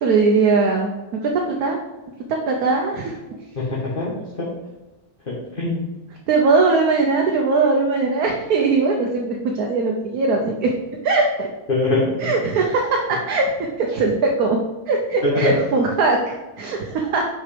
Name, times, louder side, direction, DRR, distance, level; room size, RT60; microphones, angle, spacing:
voice 1, 0.0-1.8 2.3-3.2 6.3-10.7 11.0-11.5 12.2-13.5 13.8-14.6 14.9-17.3, right 3 dB, 75° right, 0 dB, 1.3 m, -20 dB
voice 2, 3.5-4.5 5.3-5.8 11.7-12.3 15.4-15.5, left 2 dB, 35° left, -7 dB, 1.7 m, -23 dB
6.5 x 5.0 x 5.0 m, 1.1 s
omnidirectional pair, 1.6 m